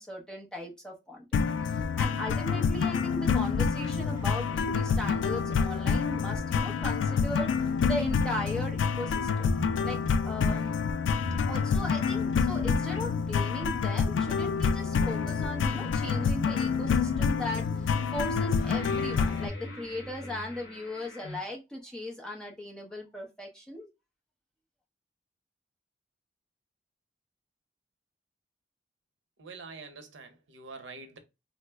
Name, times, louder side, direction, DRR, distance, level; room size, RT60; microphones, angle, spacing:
voice 1, 0.0-7.5 7.8-9.5 9.8-10.8 11.4-23.9, left 1 dB, 5° left, 0.7 m, -38 dB
sound 1, 1.3-19.5, left 5 dB, 90° left, 0.3 m, -27 dB
sound 2, 3.0-21.4, left 1 dB, 60° left, 1.2 m, -45 dB
voice 2, 29.4-31.2, right 4 dB, 85° right, 0.7 m, -45 dB
3.1 x 2.0 x 3.3 m
head